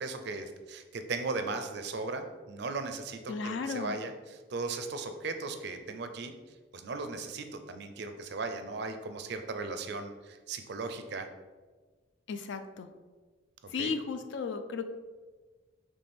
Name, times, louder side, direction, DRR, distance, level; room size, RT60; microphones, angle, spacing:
voice 1, 0.0-6.3 6.7-11.3 13.6-13.9, right 3 dB, 55° right, 8 dB, 0.4 m, -37 dB
voice 2, 3.3-4.0 12.3-12.9 13.7-14.8, left 5 dB, 60° left, 8 dB, 0.4 m, -34 dB
4.3 x 3.1 x 3.4 m, 1.3 s
head